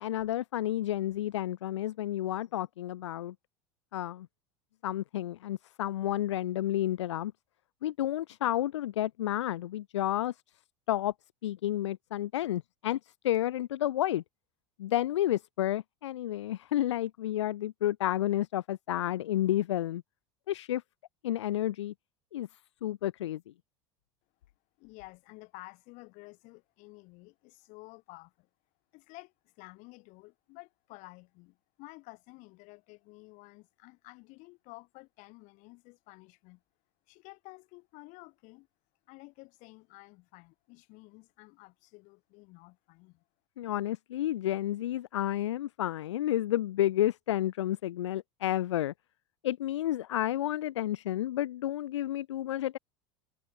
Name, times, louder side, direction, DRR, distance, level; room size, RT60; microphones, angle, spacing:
voice 1, 0.0-3.3 3.9-4.3 4.8-7.3 7.8-10.3 10.9-11.1 11.4-13.0 13.2-14.2 14.8-20.0 20.5-20.8 21.2-21.9 22.3-22.5 22.8-23.4 43.6-48.9 49.4-52.8, left 13 dB, 80° left, 0.5 m, -31 dB
voice 2, 24.8-28.5 28.9-36.6 37.1-38.7 39.1-43.2, left 26 dB, 60° left, 6.0 m, -52 dB
hypercardioid pair, 85°, 15 cm